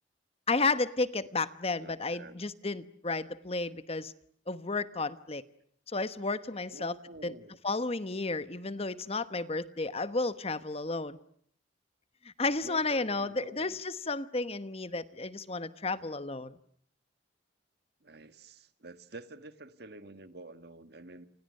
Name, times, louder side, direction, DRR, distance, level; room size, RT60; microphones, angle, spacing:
voice 1, 0.5-4.1 4.5-5.4 5.9-7.0 7.2-7.3 7.6-11.2 12.4-16.5, left 3 dB, 30° left, 13 dB, 1.1 m, -32 dB
voice 2, 1.8-2.4 6.7-7.6 12.6-13.8 18.0-21.3, right 2 dB, 60° right, 11 dB, 1.7 m, -49 dB
30.0 x 28.0 x 6.6 m, 0.63 s
head